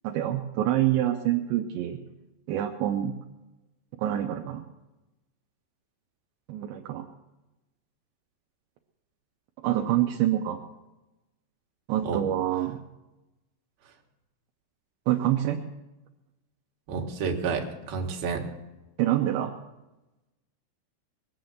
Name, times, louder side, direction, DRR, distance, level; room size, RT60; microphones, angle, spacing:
voice 1, 0.0-2.0 2.5-3.2 4.0-4.6 6.5-7.0 9.6-10.6 11.9-12.8 15.1-15.6 19.0-19.5, right 12 dB, 80° right, 2 dB, 3.0 m, -26 dB
voice 2, 16.9-18.4, right 5 dB, 60° right, 2 dB, 3.3 m, -30 dB
21.0 x 7.5 x 7.9 m, 1.0 s
omnidirectional pair, 5.3 m